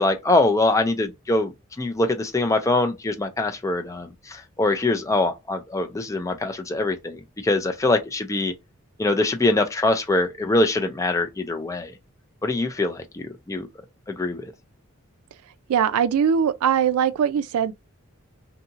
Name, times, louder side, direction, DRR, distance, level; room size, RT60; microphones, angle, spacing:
voice 1, 0.0-1.5 1.8-8.5 9.0-11.9 12.4-13.7 14.1-14.5, left 2 dB, 15° left, 0.4 m, -23 dB
voice 2, 15.7-17.7, right 8 dB, 85° right, 0.3 m, -21 dB
2.7 x 2.7 x 2.4 m
head